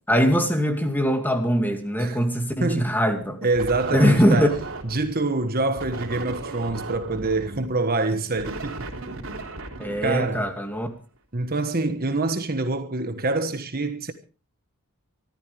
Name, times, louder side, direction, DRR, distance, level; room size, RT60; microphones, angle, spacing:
voice 1, 0.1-3.4 3.9-4.5 9.8-10.9, equal, 10° left, 2.4 m, -21 dB
voice 2, 2.6-2.9 3.4-8.9 10.0-10.5 11.3-14.1, right 2 dB, 45° right, 1.3 m, -26 dB
sound 1, 3.5-5.2 5.8-10.9, right 2 dB, 60° right, 3.5 m, -36 dB
25.0 x 13.5 x 3.4 m
head